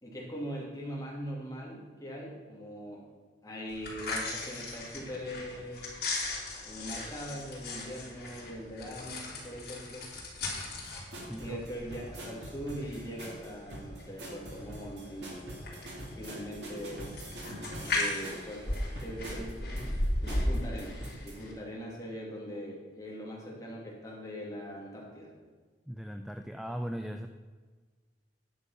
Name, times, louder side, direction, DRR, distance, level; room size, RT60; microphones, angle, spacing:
voice 1, 0.0-3.0 3.4-5.9 6.6-10.1 10.4-10.5 11.4-15.7 16.2-17.2 17.9-19.9 20.2-20.9 21.2-25.3, equal, 20° left, -4 dB, 2.6 m, -41 dB
sound 1, 3.7-21.5, left 2 dB, 60° left, 3.2 m, -37 dB
sound 2, 10.8-21.3, equal, 65° right, 2.7 m, -44 dB
voice 2, 25.9-27.3, equal, ahead, 6 dB, 0.3 m, -38 dB
10.0 x 7.6 x 5.7 m, 1.4 s
head